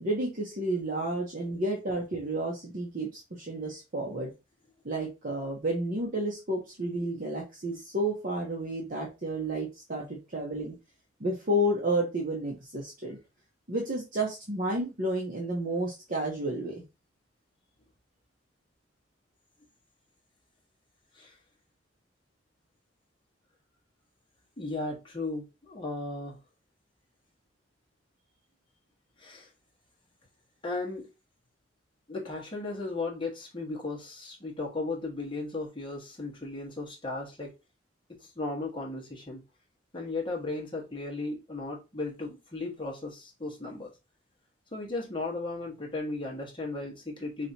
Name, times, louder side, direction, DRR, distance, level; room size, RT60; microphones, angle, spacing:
voice 1, 0.0-4.3 4.8-10.7 11.2-13.2 13.7-16.8, right 1 dB, 45° right, 0.9 m, -31 dB
voice 2, 24.6-26.4 29.2-29.5 30.6-31.1 32.1-37.5 38.2-39.4 39.9-43.9 44.7-47.5, left 2 dB, 25° left, 1.3 m, -36 dB
4.9 x 2.9 x 2.8 m
head